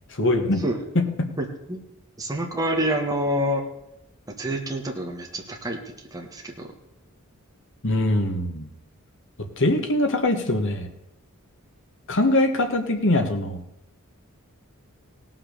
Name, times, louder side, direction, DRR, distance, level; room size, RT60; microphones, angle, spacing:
voice 1, 0.1-0.6 0.9-1.0 7.8-8.7 9.4-10.9 12.1-13.6, left 1 dB, 60° left, 5 dB, 1.7 m, -22 dB
voice 2, 1.4-1.8 2.2-3.6 4.3-6.7, equal, 15° right, 0 dB, 1.7 m, -28 dB
17.5 x 5.9 x 6.7 m, 0.88 s
head